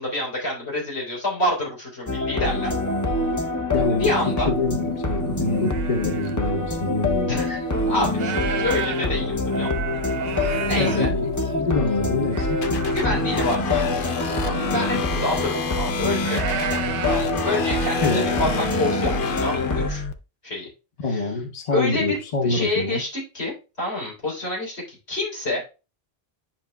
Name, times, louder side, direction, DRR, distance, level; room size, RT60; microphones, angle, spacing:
voice 1, 0.0-2.7 4.0-4.5 7.3-9.8 10.3-11.1 12.9-13.9 14.4-16.4 17.0-19.1 19.4-20.0 20.4-20.7 21.1-21.3 21.7-25.6, left 1 dB, 85° left, 4.0 m, -27 dB
sound 1, 2.1-19.9, left 2 dB, 20° left, 0.6 m, -25 dB
voice 2, 3.7-4.1 4.5-7.4 10.8-12.6 14.9-15.2 18.0-18.5 21.0-23.0, left 3 dB, 40° left, 1.0 m, -26 dB
sound 2, 4.5-4.6 5.0-6.4 7.1-7.2 7.6-11.7 12.2-13.1 13.3-13.4 13.9-14.0 14.3-14.9 15.6-18.7, right 8 dB, 70° right, 0.8 m, -33 dB
sound 3, 12.6-20.1, left 5 dB, 60° left, 0.9 m, -30 dB
10.5 x 5.7 x 2.3 m
omnidirectional pair, 1.1 m